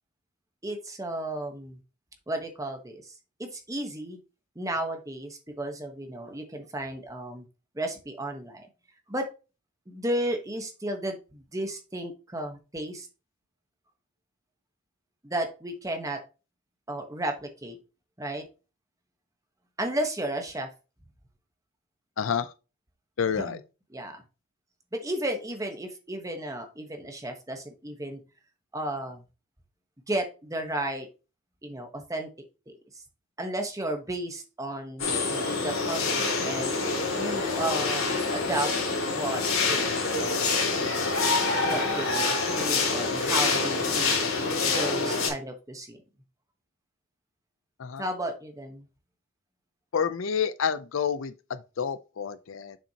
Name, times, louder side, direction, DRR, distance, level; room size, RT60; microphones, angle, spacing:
voice 1, 0.6-1.8 2.3-3.1 3.4-4.2 4.6-7.4 7.7-8.7 9.1-9.3 9.9-13.1 15.2-16.2 16.9-17.8 18.2-18.4 19.8-20.7 23.4-23.6 23.9-24.2 24.9-28.2 28.7-29.2 30.1-31.1 31.6-32.3 32.7-32.8 33.4-36.7 37.1-38.7 39.1-40.5 41.6-44.2 44.6-46.0 48.0-48.9, right 1 dB, 15° right, 1.1 m, -33 dB
voice 2, 22.2-22.5 23.2-23.6 47.8-48.0 49.9-52.8, left 7 dB, 70° left, 0.5 m, -29 dB
sound 1, 35.0-45.3, left 3 dB, 90° left, 2.4 m, -26 dB
7.0 x 5.8 x 2.8 m
head